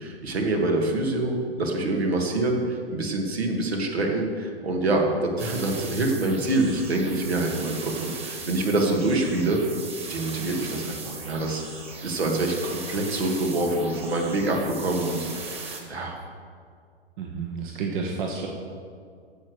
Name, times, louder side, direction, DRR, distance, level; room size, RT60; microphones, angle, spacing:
voice 1, 0.0-9.6 10.1-11.6 12.0-16.2, right 2 dB, 75° right, 1 dB, 2.2 m, -26 dB
sound 1, 5.4-15.8, right 4 dB, 20° right, 1.7 m, -38 dB
voice 2, 12.1-12.4 17.2-18.5, right 5 dB, 50° right, 1 dB, 1.4 m, -31 dB
15.0 x 5.4 x 6.4 m, 2.2 s
figure-of-eight pair, 105°, 32 cm